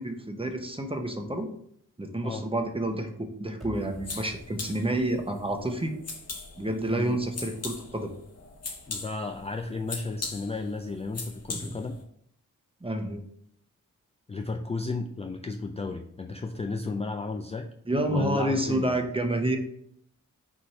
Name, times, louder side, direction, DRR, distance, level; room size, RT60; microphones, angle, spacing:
voice 1, 0.0-1.5 2.0-5.9 6.6-8.1 11.6-11.7 12.8-13.2 17.9-19.6, right 1 dB, 15° right, 5 dB, 0.8 m, -29 dB
sound 1, 3.6-6.7, right 1 dB, ahead, 1.2 m, -48 dB
sound 2, 3.7-12.0, left 4 dB, 45° left, 1.0 m, -41 dB
voice 2, 8.9-12.0 14.3-17.7 18.1-19.0, left 3 dB, 20° left, 4 dB, 0.3 m, -33 dB
4.7 x 2.6 x 4.2 m, 0.70 s
cardioid pair, 55°, 33 cm